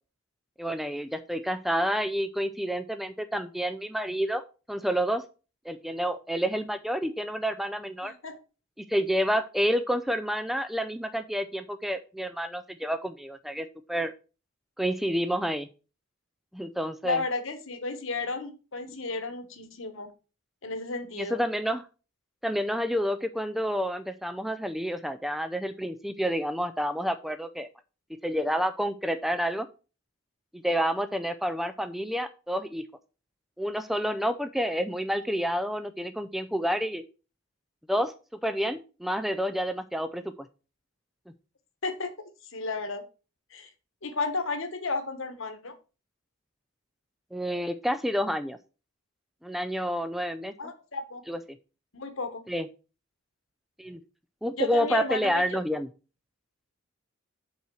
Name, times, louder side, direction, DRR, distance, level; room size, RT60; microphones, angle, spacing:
voice 1, 0.6-4.4 4.7-5.3 5.7-8.1 8.9-14.1 14.8-15.7 16.5-17.2 21.2-21.8 22.4-27.7 28.2-29.7 30.5-32.8 33.6-37.0 37.9-40.3 47.3-48.6 49.4-50.5 51.3-51.4 52.5-52.7 53.8-54.0 54.4-55.9, equal, ahead, 10 dB, 0.3 m, -29 dB
voice 2, 8.0-8.4 17.0-20.1 20.6-21.4 41.8-42.1 42.5-43.0 43.5-43.7 44.0-45.7 50.6-51.2 51.9-52.4 54.6-55.6, left 3 dB, 65° left, 9 dB, 1.2 m, -33 dB
5.7 x 4.4 x 6.1 m, 0.34 s
head